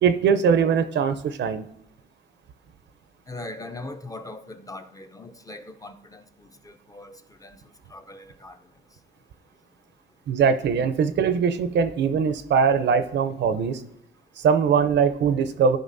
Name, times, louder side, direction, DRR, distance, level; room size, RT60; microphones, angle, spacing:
voice 1, 0.0-1.7 10.3-13.8 14.4-15.8, right 6 dB, 60° right, 0.6 m, -21 dB
voice 2, 3.3-7.6 7.9-8.6, left 2 dB, 15° left, 0.6 m, -40 dB
13.0 x 5.2 x 2.6 m
cardioid pair, 90°, 20 cm